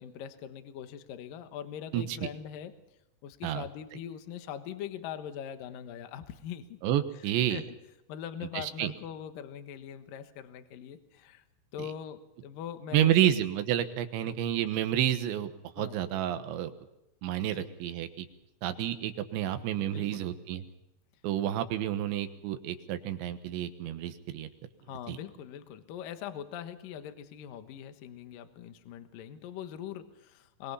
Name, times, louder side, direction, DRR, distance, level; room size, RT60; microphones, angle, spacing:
voice 1, 0.0-2.7 3.2-6.8 7.5-7.6 8.1-11.4 11.7-13.4 14.2-14.4 15.8-16.0 17.4-17.7 19.8-20.2 24.9-30.7, left 9 dB, 65° left, 9 dB, 2.6 m, -42 dB
voice 2, 6.8-7.6 8.5-8.9 12.9-16.7 17.2-18.3 18.6-20.6 21.2-24.5 25.1-25.2, right 11 dB, 80° right, 9 dB, 3.5 m, -30 dB
24.5 x 22.0 x 5.6 m, 0.85 s
omnidirectional pair, 5.2 m